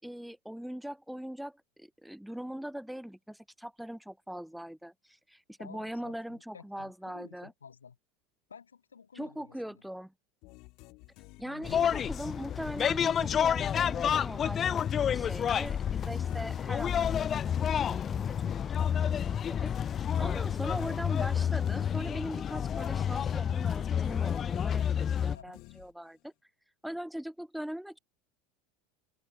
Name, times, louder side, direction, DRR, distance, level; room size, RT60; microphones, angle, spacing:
voice 1, 0.0-7.5 9.1-10.1 11.4-17.5 17.8-26.3 26.8-28.0, equal, ahead, 2.6 m, -41 dB
voice 2, 5.6-8.0 8.5-9.6 11.4-11.9 25.3-25.6, left 6 dB, 80° left, 6.9 m, -52 dB
sound 1, 10.4-14.4 14.8-22.4 22.8-26.3, left 26 dB, 55° left, 2.9 m, -53 dB
sound 2, 11.6-25.4, left 8 dB, 30° left, 0.3 m, -29 dB
open air
figure-of-eight pair, 75°, 0 cm